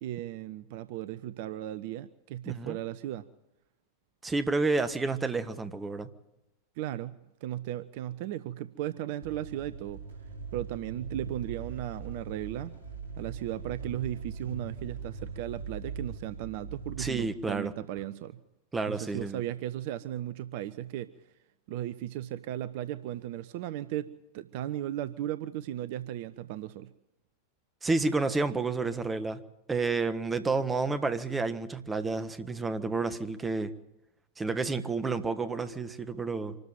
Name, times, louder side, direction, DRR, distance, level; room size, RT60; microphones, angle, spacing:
voice 1, 0.0-3.3 6.8-10.0 10.5-12.8 13.2-18.4 18.9-21.1 21.7-26.9, right 13 dB, 50° right, 0.7 m, -36 dB
voice 2, 2.5-2.8 4.2-6.1 17.0-17.7 18.7-19.4 27.8-29.4 29.7-33.7 34.4-36.6, right 3 dB, 15° right, 1.4 m, -30 dB
sound 1, 9.2-17.6, right 5 dB, 85° left, 3.0 m, -41 dB
25.5 x 13.5 x 8.8 m
figure-of-eight pair, 90°, 0 cm